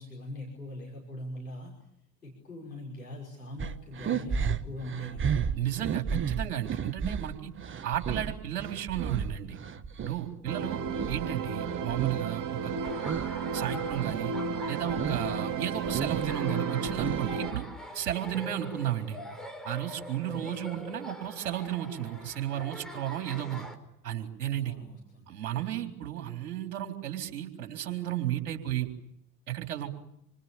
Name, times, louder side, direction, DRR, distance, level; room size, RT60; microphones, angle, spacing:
voice 1, 0.0-1.7 2.2-5.5 18.2-18.7 20.2-20.6 24.6-25.3, equal, 80° left, -2 dB, 5.7 m, -42 dB
sound 1, 3.6-10.2 10.6-12.3 12.6-13.4 13.7-14.3 14.7-15.3 15.6-17.5, right 7 dB, 25° right, 1.3 m, -33 dB
voice 2, 5.6-7.5 7.8-9.6 10.0-10.8 11.1-12.7 13.5-14.3 14.7-17.7 17.9-19.2 19.6-23.7 24.0-24.7 25.3-28.9 29.5-29.9, right 12 dB, 65° right, 4 dB, 4.1 m, -33 dB
sound 2, 10.5-17.5, right 6 dB, 45° right, 3.3 m, -33 dB
Laughter, 12.8-23.7, left 1 dB, ahead, 4.9 m, -44 dB
27.5 x 26.0 x 7.3 m, 0.79 s
figure-of-eight pair, 70°, 47 cm